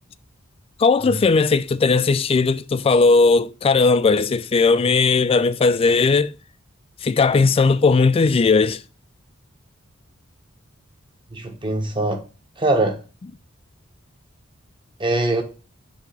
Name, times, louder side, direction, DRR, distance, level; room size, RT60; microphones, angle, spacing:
voice 1, 0.8-6.3 7.0-8.8, left 4 dB, 30° left, 0.3 m, -17 dB
voice 2, 11.3-12.2 12.6-13.0 15.0-15.4, right 2 dB, 25° right, 1.0 m, -22 dB
7.2 x 2.9 x 5.2 m
head